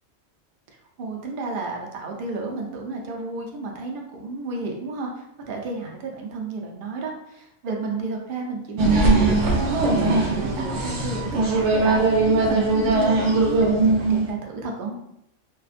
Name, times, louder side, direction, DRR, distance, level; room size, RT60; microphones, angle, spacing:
voice 1, 1.0-14.9, right 3 dB, 60° right, 1 dB, 0.6 m, -32 dB
sound 1, 8.8-14.3, right 3 dB, 80° right, 0.9 m, -20 dB
2.5 x 2.5 x 2.4 m, 0.79 s
omnidirectional pair, 1.3 m